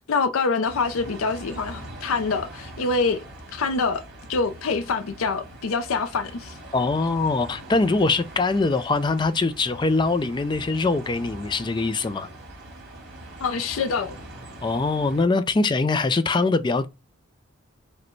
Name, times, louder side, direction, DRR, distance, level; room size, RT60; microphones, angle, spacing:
voice 1, 0.0-3.2 3.5-4.0 4.3-6.6 13.4-14.2, left 4 dB, 90° left, 0.5 m, -25 dB
sound 1, 0.6-15.2, right 1 dB, 55° right, 2.5 m, -42 dB
voice 2, 6.7-12.3 14.6-16.9, left 3 dB, 20° left, 0.3 m, -23 dB
4.9 x 2.2 x 4.5 m
head